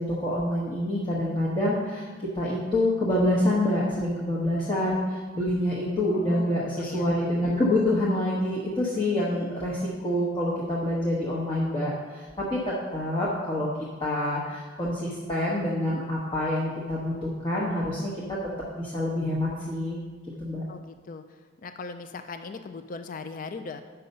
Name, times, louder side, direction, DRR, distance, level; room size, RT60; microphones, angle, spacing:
voice 1, 0.0-2.1 2.3-13.7 14.0-18.4 18.7-20.0 20.4-20.6, left 1 dB, 25° left, -7 dB, 1.1 m, -27 dB
voice 2, 6.1-7.1 20.7-21.2 21.6-23.8, left 4 dB, 45° left, 9 dB, 0.4 m, -39 dB
7.7 x 5.7 x 5.4 m, 1.4 s
head